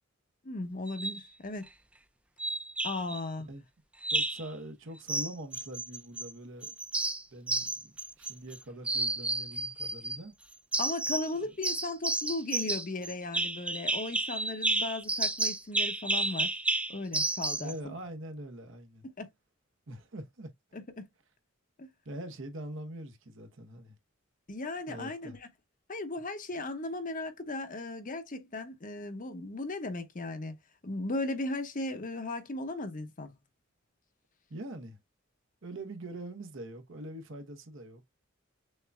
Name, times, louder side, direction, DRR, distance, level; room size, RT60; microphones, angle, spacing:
voice 1, 0.4-1.7 2.8-3.5 10.8-16.6 16.9-17.9 19.2-19.3 20.7-21.0 21.8-21.9 24.5-25.5 25.9-30.5 30.8-33.3, left 2 dB, 40° left, 0.9 m, -36 dB
sound 1, 0.9-1.2 2.4-3.2 4.0-4.5 5.1-6.3 6.6-8.6 8.8-10.2 10.7-11.3 11.6-17.7, right 2 dB, 5° right, 0.3 m, -31 dB
voice 2, 4.1-6.7 7.3-10.3 17.6-19.0 19.9-20.5 22.0-24.0 24.9-25.4 34.5-35.0 35.6-38.0, right 1 dB, 65° right, 1.0 m, -43 dB
6.4 x 2.6 x 2.3 m
head